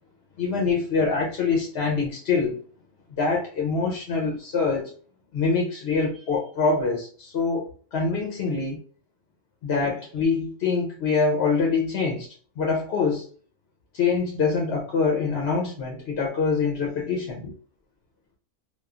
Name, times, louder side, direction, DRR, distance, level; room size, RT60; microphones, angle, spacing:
voice 1, 0.4-2.6 3.2-4.9 5.3-8.8 9.6-12.3 12.6-13.3 13.9-17.5, left 4 dB, 60° left, 0.7 m, -25 dB
3.0 x 2.3 x 2.3 m
omnidirectional pair, 1.6 m